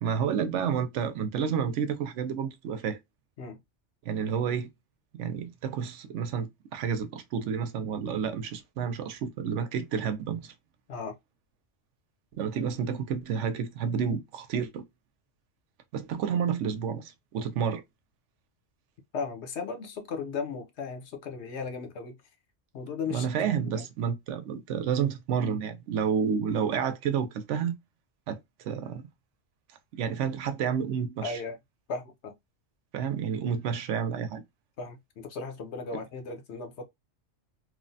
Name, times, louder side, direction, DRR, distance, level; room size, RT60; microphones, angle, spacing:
voice 1, 0.0-3.0 4.0-4.7 5.1-10.5 12.3-14.8 15.9-17.8 23.1-27.8 28.3-29.0 29.9-31.4 32.9-34.4, right 7 dB, 85° right, 0.9 m, -30 dB
voice 2, 19.1-22.2 22.7-23.9 31.2-31.6 31.9-32.4 34.8-36.8, left 5 dB, 70° left, 1.0 m, -36 dB
3.1 x 2.0 x 2.6 m
omnidirectional pair, 1.2 m